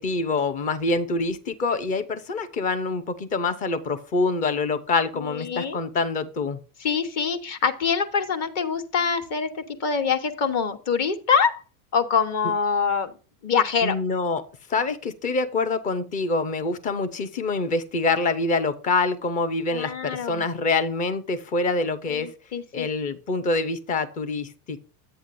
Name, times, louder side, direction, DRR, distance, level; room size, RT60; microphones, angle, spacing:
voice 1, 0.0-6.6 13.8-14.4 14.7-22.3 22.7-24.8, left 3 dB, 15° left, 12 dB, 0.5 m, -25 dB
voice 2, 5.1-5.8 6.8-11.6 11.9-13.1 13.4-14.0 19.7-20.5 22.1-22.9, left 6 dB, 30° left, 8 dB, 1.1 m, -25 dB
12.0 x 8.4 x 2.6 m, 0.35 s
supercardioid pair, 170°, 49 cm